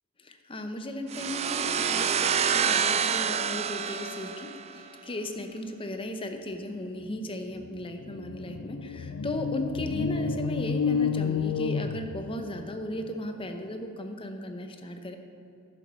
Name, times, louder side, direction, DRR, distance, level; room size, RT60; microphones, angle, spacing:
voice 1, 0.2-15.2, left 1 dB, 25° left, 6 dB, 0.8 m, -36 dB
sound 1, 1.1-4.8, right 7 dB, 30° right, 0.3 m, -27 dB
sound 2, 7.2-7.3 7.6-12.7, left 6 dB, 70° left, 0.4 m, -30 dB
10.5 x 7.1 x 6.2 m, 2.8 s
head